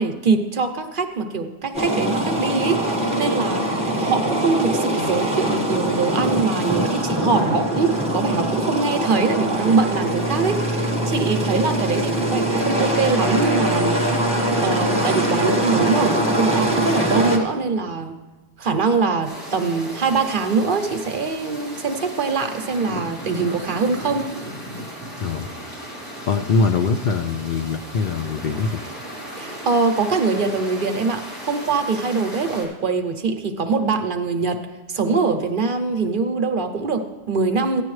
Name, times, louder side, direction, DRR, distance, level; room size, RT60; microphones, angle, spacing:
voice 1, 0.0-3.7 4.0-14.0 14.6-18.2 18.6-24.3 29.4-34.6 34.9-37.8, right 4 dB, 55° right, 6 dB, 0.9 m, -23 dB
sound 1, 1.7-17.4, right 1 dB, 5° right, 1.4 m, -22 dB
sound 2, 19.2-32.6, right 1 dB, 20° left, 3.5 m, -36 dB
voice 2, 25.2-25.5 26.3-28.8, left 4 dB, 60° left, 8 dB, 0.6 m, -22 dB
14.5 x 9.8 x 3.2 m, 1.2 s
omnidirectional pair, 1.1 m